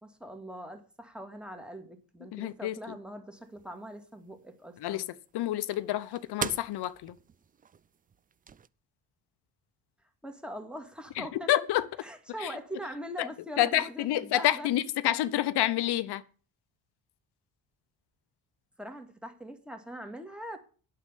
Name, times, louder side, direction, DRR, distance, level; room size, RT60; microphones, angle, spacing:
voice 1, 0.0-5.0 10.2-11.6 12.0-14.7 18.8-20.6, equal, ahead, 2.1 m, -42 dB
voice 2, 2.3-3.0 4.8-5.0 5.3-7.1 11.2-11.9 12.4-12.5 13.2-13.3 13.6-16.2, left 13 dB, 70° left, 0.9 m, -28 dB
sound 1, 3.4-8.7, right 7 dB, 20° right, 0.4 m, -43 dB
8.4 x 6.8 x 8.4 m
cardioid pair, 90°, 41 cm